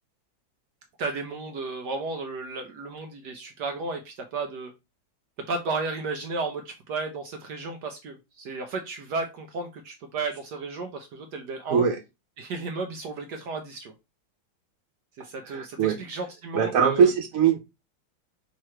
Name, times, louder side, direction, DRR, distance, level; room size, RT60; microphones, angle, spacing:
voice 1, 1.0-4.7 5.5-11.8 12.4-13.9 15.2-17.1, right 3 dB, 65° right, 1.2 m, -33 dB
voice 2, 15.5-16.0 16.5-17.6, right 7 dB, 90° right, 0.7 m, -21 dB
3.7 x 3.1 x 4.3 m
omnidirectional pair, 2.2 m